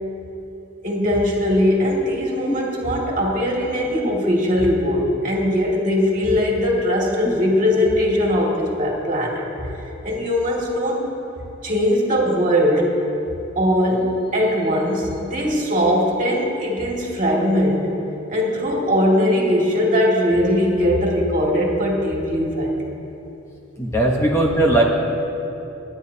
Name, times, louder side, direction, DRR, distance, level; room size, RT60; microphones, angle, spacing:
voice 1, 0.8-9.7 10.0-11.0 11.6-13.0 13.6-17.9 18.3-22.8, equal, 40° right, -2 dB, 2.2 m, -20 dB
voice 2, 23.8-24.8, right 1 dB, 15° left, -1 dB, 1.0 m, -18 dB
28.0 x 9.6 x 2.8 m, 3.0 s
head